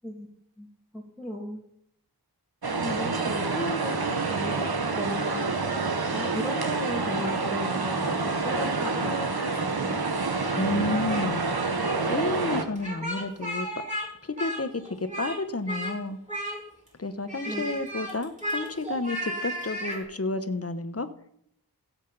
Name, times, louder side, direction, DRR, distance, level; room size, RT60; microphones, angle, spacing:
voice 1, 0.9-1.7 2.8-5.5 6.1-10.1 17.5-17.6, equal, ahead, -4 dB, 2.5 m, -35 dB
sound 1, 2.6-12.7, right 3 dB, 75° right, 1.3 m, -28 dB
Speech, 10.3-11.3 11.6-11.9 12.8-14.1 14.4-15.4 15.7-16.0 16.3-16.9 17.3-20.0, equal, 20° right, 5.4 m, -34 dB
voice 2, 10.5-11.5 12.1-13.7 14.2-16.2 17.0-21.1, left 2 dB, 40° left, 10 dB, 1.1 m, -31 dB
16.5 x 7.4 x 4.2 m, 0.72 s
wide cardioid pair, 45°, 38 cm